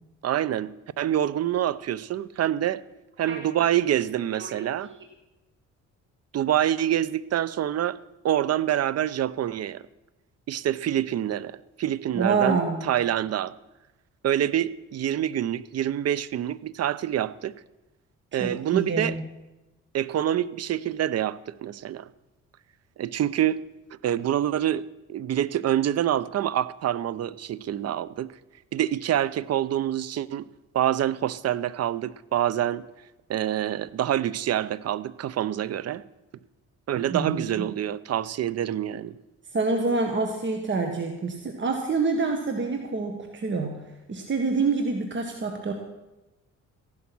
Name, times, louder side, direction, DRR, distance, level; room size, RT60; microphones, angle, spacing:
voice 1, 0.2-2.8 3.2-4.9 6.3-8.0 8.2-9.8 10.5-13.5 14.2-17.6 18.3-19.2 19.9-22.1 23.0-23.6 24.0-28.3 28.7-30.5 30.7-32.8 33.3-36.0 36.9-39.1, right 11 dB, 55° right, 0.7 m, -26 dB
voice 2, 3.3-3.7 4.3-4.9 12.2-12.9 18.4-19.2 37.1-37.6 39.5-43.8 44.1-45.7, right 4 dB, 40° right, 1.7 m, -27 dB
15.5 x 11.5 x 6.1 m
cardioid pair, 90°, 30 cm